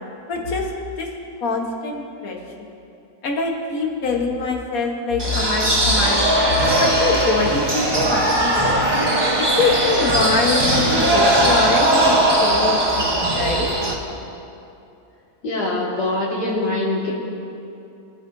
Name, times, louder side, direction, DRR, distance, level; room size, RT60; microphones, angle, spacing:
voice 1, 0.3-0.7 1.0-1.1 1.4-2.7 3.2-8.8 9.4-13.7, left 3 dB, 60° left, 1 dB, 1.7 m, -24 dB
sound 1, 5.2-13.9, right 1 dB, 15° right, 1.1 m, -19 dB
voice 2, 15.4-17.1, left 2 dB, 80° left, -4 dB, 2.6 m, -23 dB
21.5 x 9.4 x 2.7 m, 2.7 s
omnidirectional pair, 1.7 m